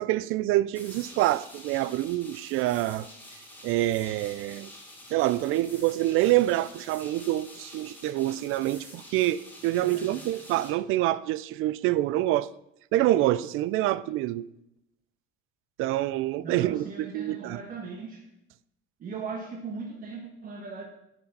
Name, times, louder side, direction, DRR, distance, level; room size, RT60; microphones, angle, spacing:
voice 1, 0.0-3.1 3.6-4.7 5.1-12.5 12.9-14.5 15.8-17.6, right 15 dB, 75° right, 0.4 m, -26 dB
sound 1, 0.7-10.7, left 1 dB, 10° left, 1.8 m, -48 dB
voice 2, 9.8-10.2 16.4-18.3 19.0-20.8, right 4 dB, 40° right, 1.4 m, -39 dB
10.5 x 5.9 x 5.4 m
cardioid pair, 155°, 21 cm